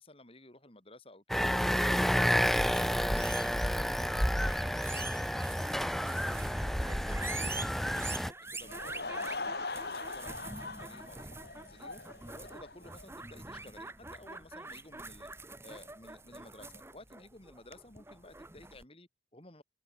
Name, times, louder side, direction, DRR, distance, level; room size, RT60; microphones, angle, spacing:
voice 1, 0.0-1.8 2.1-7.5 7.8-12.0 12.3-15.3 15.6-19.6, left 1 dB, 30° left, 4.1 m, -54 dB
sound 1, 1.3-8.3, equal, ahead, 1.0 m, -30 dB
sound 2, 2.4-18.8, right 3 dB, 15° right, 4.0 m, -45 dB
Laughter / Crowd, 8.5-13.0, left 3 dB, 60° left, 4.5 m, -41 dB
open air
head